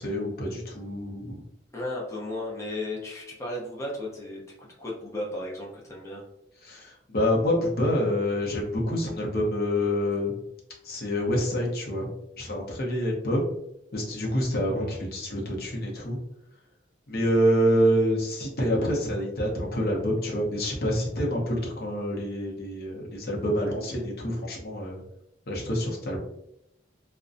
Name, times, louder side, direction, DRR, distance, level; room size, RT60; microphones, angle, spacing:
voice 1, 0.0-1.4 6.6-10.4 10.8-12.1 12.4-13.5 13.9-16.2 17.1-25.0 25.5-26.2, equal, 55° left, -1 dB, 0.7 m, -27 dB
voice 2, 1.7-6.2, left 1 dB, 15° left, -4 dB, 0.6 m, -35 dB
2.5 x 2.1 x 2.4 m, 0.81 s
head